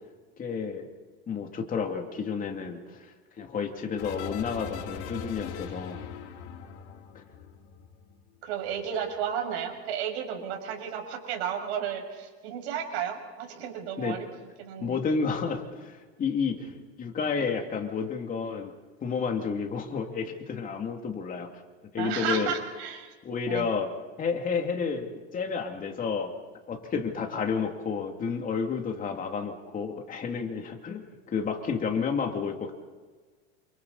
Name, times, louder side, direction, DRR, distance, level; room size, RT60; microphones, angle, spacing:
voice 1, 0.4-0.9 1.3-3.1 3.4-6.0 7.1-7.2 14.0-14.2 14.8-18.7 19.0-21.6 21.9-22.5 23.2-23.9 24.2-26.4 26.7-32.7, left 5 dB, 25° left, 3 dB, 2.9 m, -31 dB
sound 1, 4.0-8.4 8.6-9.2, left 7 dB, 90° left, 4.1 m, -41 dB
voice 2, 8.4-14.2 14.6-15.0 22.0-23.1 23.5-23.7, right 8 dB, 85° right, 2 dB, 6.6 m, -33 dB
28.5 x 28.5 x 4.3 m, 1.4 s
supercardioid pair, 150°, 32 cm